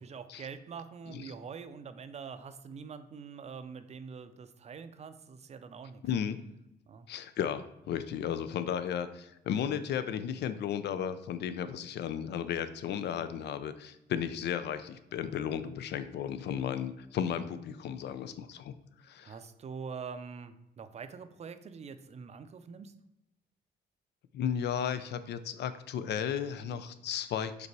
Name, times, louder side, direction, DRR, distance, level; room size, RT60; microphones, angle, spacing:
voice 1, 0.0-6.0 6.9-7.1 19.2-22.9, right 6 dB, 40° right, 10 dB, 0.5 m, -44 dB
voice 2, 6.0-6.4 7.1-18.7 19.0-19.3 24.3-27.7, left 8 dB, 70° left, 12 dB, 0.5 m, -34 dB
5.3 x 4.0 x 4.7 m, 0.89 s
cardioid pair, 140°, 18 cm